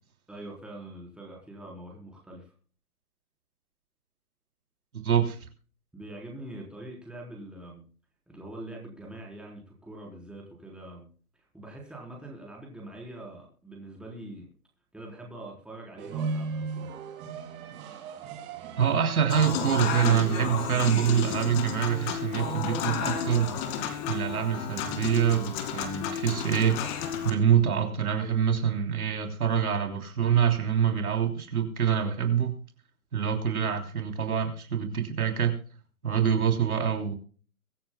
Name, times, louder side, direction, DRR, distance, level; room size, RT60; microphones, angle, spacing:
voice 1, 0.3-2.5 5.9-7.8 8.3-11.1 11.5-14.5 14.9-16.9, right 1 dB, ahead, 3.9 m, -43 dB
voice 2, 4.9-5.4 18.8-23.6 24.1-26.8 27.2-32.5 33.1-35.6 36.0-37.1, right 8 dB, 75° right, 3.3 m, -25 dB
sound 1, 16.0-26.2, right 4 dB, 25° right, 2.9 m, -40 dB
Human voice / Acoustic guitar / Piano, 19.3-27.3, left 8 dB, 25° left, 2.2 m, -32 dB
23.5 x 9.4 x 2.3 m
hypercardioid pair, 140°, 44 cm